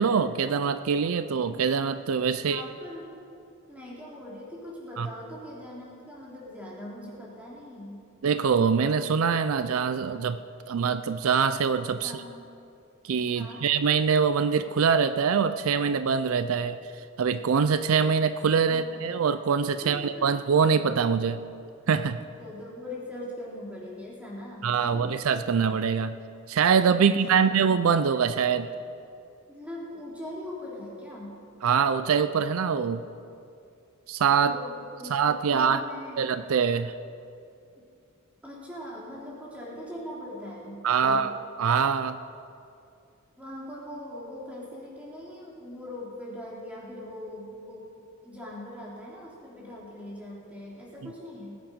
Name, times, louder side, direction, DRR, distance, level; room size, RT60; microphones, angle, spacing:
voice 1, 0.0-2.6 5.0-5.1 8.2-10.4 10.7-12.2 13.0-16.8 17.2-21.4 21.9-22.2 24.6-26.2 26.5-28.7 31.6-33.1 34.1-34.5 35.1-35.8 36.2-36.9 40.8-41.3 41.6-42.2, right 6 dB, 75° right, 12 dB, 0.4 m, -24 dB
voice 2, 2.3-3.1 3.7-8.1 12.0-12.4 13.3-13.6 18.7-19.0 19.8-20.4 22.4-25.1 27.0-27.6 29.5-31.4 34.4-36.3 38.4-41.3 43.4-47.9 48.2-51.6, left 1 dB, 5° right, -6 dB, 3.1 m, -41 dB
19.5 x 8.8 x 5.2 m, 2.5 s
head